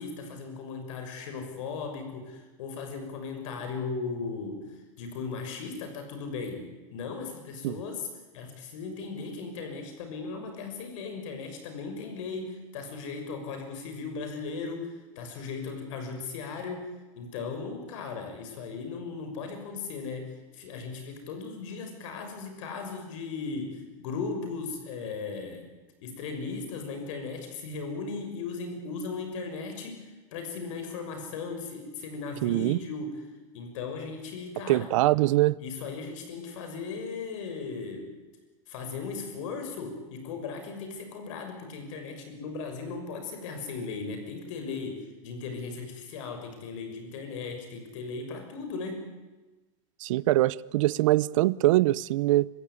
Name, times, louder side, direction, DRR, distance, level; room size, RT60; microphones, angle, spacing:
voice 1, 0.0-8.1 8.3-16.9 17.1-25.7 26.0-33.2 33.5-34.9 35.6-38.1 38.7-49.1, left 4 dB, 70° left, 6.3 m, -37 dB
voice 2, 32.4-32.8 34.7-35.6 50.0-52.5, right 17 dB, 75° right, 0.7 m, -23 dB
25.0 x 17.0 x 10.0 m
supercardioid pair, 155°, 17 cm